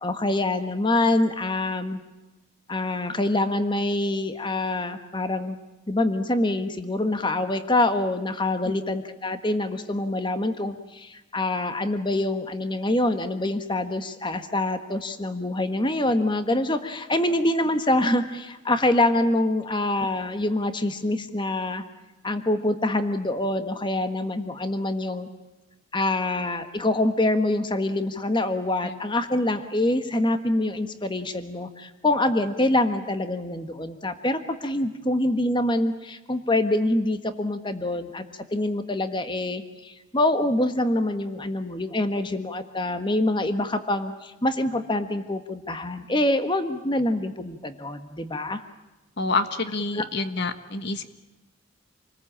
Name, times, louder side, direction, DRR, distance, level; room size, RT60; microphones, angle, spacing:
voice 1, 0.0-2.0 2.7-5.6 5.9-21.8 22.2-25.3 25.9-38.2 38.5-48.6 49.9-50.0, left 1 dB, 25° left, 9 dB, 1.5 m, -25 dB
voice 2, 49.2-51.0, left 3 dB, 55° left, 10 dB, 1.4 m, -27 dB
28.0 x 20.5 x 8.8 m, 1.1 s
head